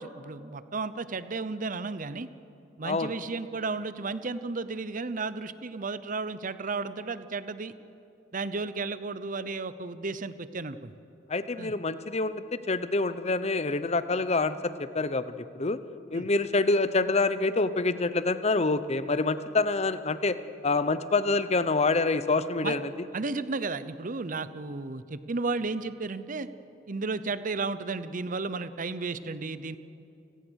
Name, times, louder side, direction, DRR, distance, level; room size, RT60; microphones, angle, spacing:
voice 1, 0.0-2.3 2.8-7.7 8.3-10.9 11.6-11.7 16.1-16.2 22.6-22.8 23.1-26.5 26.9-29.8, right 3 dB, 45° right, 14 dB, 0.8 m, -33 dB
voice 2, 11.3-15.8 16.1-20.4 20.6-23.1, left 3 dB, 35° left, 13 dB, 0.8 m, -26 dB
29.5 x 17.5 x 6.4 m, 2.8 s
head